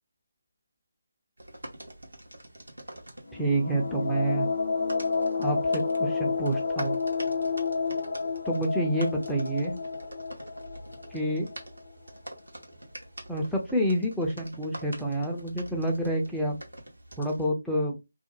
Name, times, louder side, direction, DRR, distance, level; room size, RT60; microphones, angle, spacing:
sound 1, 1.4-17.5, right 1 dB, 75° right, 0.8 m, -46 dB
sound 2, 3.3-11.9, left 4 dB, 55° left, 0.5 m, -30 dB
voice 1, 3.3-4.5 5.4-7.0 8.5-9.8 11.1-11.5 13.3-16.6 17.2-18.0, right 1 dB, ahead, -3 dB, 0.4 m, -28 dB
2.4 x 2.1 x 2.9 m, 0.24 s
figure-of-eight pair, 155°, 0 cm